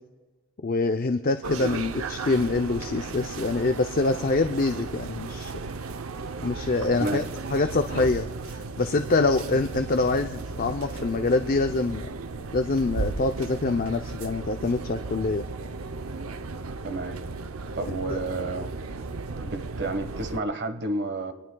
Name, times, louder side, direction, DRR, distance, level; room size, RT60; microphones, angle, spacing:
voice 1, 0.6-5.5 6.4-7.2 7.5-12.1 12.5-15.4 17.9-18.2, left 3 dB, 45° left, 6 dB, 0.6 m, -25 dB
sound 1, 1.4-20.4, right 3 dB, 80° right, 0.7 m, -35 dB
voice 2, 6.9-7.2 16.8-17.2 17.7-19.0 19.3-21.3, right 2 dB, 55° right, 8 dB, 1.4 m, -31 dB
24.0 x 19.0 x 2.3 m, 1.3 s
head